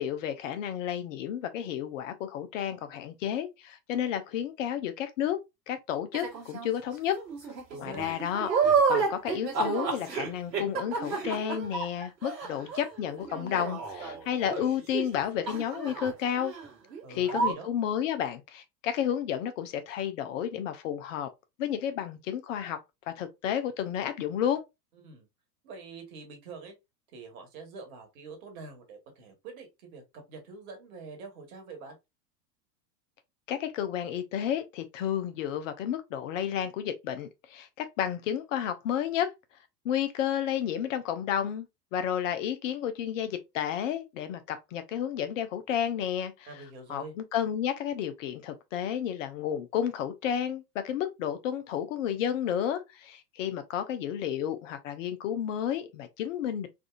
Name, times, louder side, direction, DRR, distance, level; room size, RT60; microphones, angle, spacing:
voice 1, 0.0-5.4 5.7-7.2 7.8-16.5 17.1-21.3 21.6-22.8 23.2-24.6 33.5-39.3 39.8-46.5 46.9-56.7, left 9 dB, 50° left, 0.6 m, -31 dB
sound 1, 6.1-6.7 7.2-15.2 15.5-16.1 16.4-16.7 16.9-17.0 17.3-17.5, right 5 dB, 75° right, 1.5 m, -30 dB
voice 2, 7.7-8.1 17.0-17.7 25.0-25.3 25.6-26.7 27.1-31.9 46.5-47.1, right 3 dB, 55° right, 1.4 m, -45 dB
3.6 x 2.4 x 2.4 m
figure-of-eight pair, 85°, 49 cm